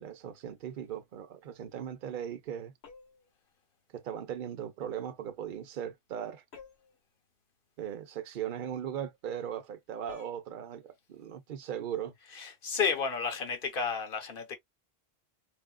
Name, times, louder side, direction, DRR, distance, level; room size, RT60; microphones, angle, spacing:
voice 1, 0.0-2.7 3.9-6.4 7.8-12.1, right 9 dB, 55° right, 0.8 m, -38 dB
sound 1, 2.8-3.3 6.5-7.0 10.1-10.4, left 5 dB, 75° left, 1.4 m, -50 dB
voice 2, 12.3-14.6, left 5 dB, 55° left, 1.1 m, -32 dB
4.3 x 2.3 x 2.2 m
omnidirectional pair, 1.1 m